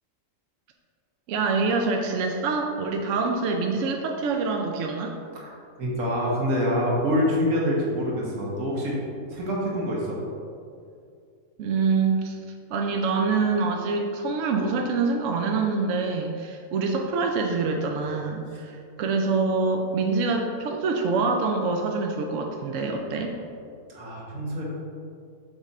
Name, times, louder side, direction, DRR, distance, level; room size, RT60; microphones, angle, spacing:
voice 1, 1.3-5.1 11.6-12.4 12.7-23.3, right 4 dB, 70° right, 2 dB, 0.9 m, -25 dB
voice 2, 5.8-8.9 9.3-10.2 23.9-24.6, equal, 85° right, -4 dB, 1.7 m, -26 dB
6.5 x 3.7 x 4.1 m, 2.4 s
omnidirectional pair, 1.5 m